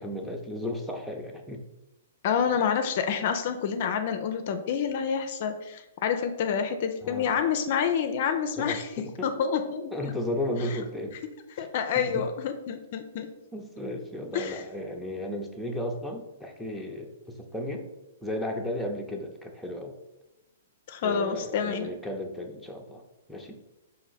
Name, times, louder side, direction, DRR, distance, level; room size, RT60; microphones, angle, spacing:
voice 1, 0.0-1.6 7.0-7.3 8.6-9.5 9.9-11.2 11.6-11.7 12.0-12.3 13.5-17.9 18.2-20.0 21.0-23.0 23.3-23.6, left 1 dB, ahead, 0 dB, 0.6 m, -34 dB
voice 2, 2.2-9.9 10.7-10.8 11.6-13.3 14.3-14.6 20.9-21.9, left 7 dB, 50° left, 7 dB, 0.4 m, -28 dB
4.4 x 2.5 x 4.0 m, 0.98 s
hypercardioid pair, 120°, 0 cm